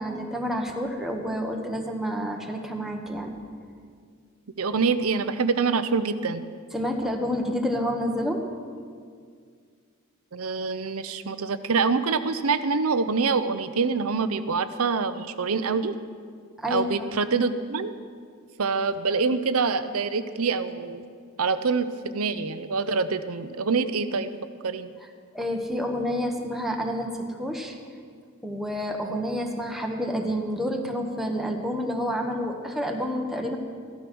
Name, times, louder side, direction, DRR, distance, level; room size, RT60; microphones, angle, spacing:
voice 1, 0.0-3.3 6.7-8.4 16.6-16.9 25.3-27.1 27.4-27.8 28.4-33.6, equal, ahead, 1 dB, 1.3 m, -29 dB
voice 2, 4.6-6.4 10.3-16.0 16.7-17.9 18.6-21.0 21.4-24.3 24.6-24.9, right 4 dB, 85° right, 12 dB, 0.8 m, -25 dB
15.0 x 12.5 x 6.2 m, 2.1 s
head